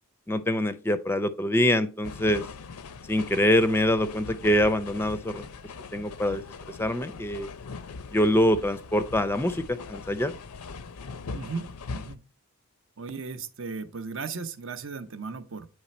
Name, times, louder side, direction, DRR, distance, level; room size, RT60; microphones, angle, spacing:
voice 1, 0.3-2.4 3.1-5.4 5.9-6.4 6.8-7.5 8.1-10.3, left 1 dB, 10° left, 0.4 m, -24 dB
sound 1, 2.0-12.2, left 4 dB, 90° left, 0.5 m, -41 dB
voice 2, 11.3-12.2 13.0-15.7, right 4 dB, 60° right, 0.6 m, -36 dB
9.5 x 3.2 x 4.2 m
head